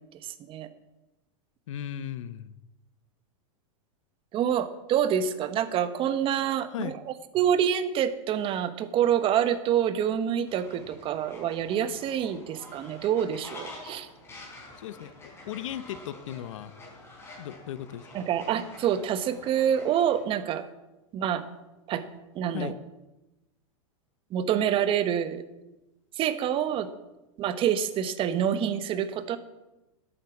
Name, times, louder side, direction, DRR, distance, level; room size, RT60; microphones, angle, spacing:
voice 1, 0.2-0.7 4.3-6.9 7.3-14.1 18.1-20.7 21.1-21.4 21.9-22.0 22.3-22.7 24.3-25.4 26.2-26.9 27.4-29.4, right 9 dB, 35° right, 12 dB, 1.1 m, -27 dB
voice 2, 1.7-2.5 6.7-6.9 14.8-16.7 17.4-18.1 22.5-22.7, left 11 dB, 80° left, 16 dB, 0.8 m, -36 dB
Fowl, 10.5-20.2, left 2 dB, 15° left, 4.0 m, -48 dB
11.0 x 9.0 x 7.1 m, 1.0 s
supercardioid pair, 135°, 16 cm